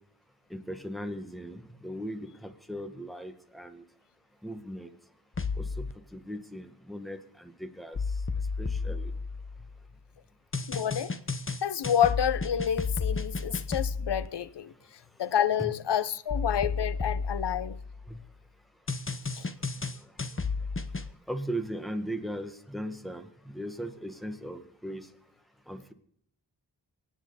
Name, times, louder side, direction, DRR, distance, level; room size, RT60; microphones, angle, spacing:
voice 1, 0.5-3.8 4.4-5.0 5.6-5.9 6.1-8.0 8.6-9.1 15.6-15.7 18.1-18.2 21.3-25.1 25.7-25.9, equal, ahead, 1.8 m, -38 dB
sound 1, 5.3-5.9 7.9-9.8 10.5-14.3 16.3-18.2 18.9-21.1, left 4 dB, 30° left, 1.1 m, -32 dB
voice 2, 10.7-11.1 11.6-14.7 15.2-17.8 19.4-19.5, left 9 dB, 70° left, 0.8 m, -28 dB
26.0 x 9.4 x 4.2 m
wide cardioid pair, 65°, 43 cm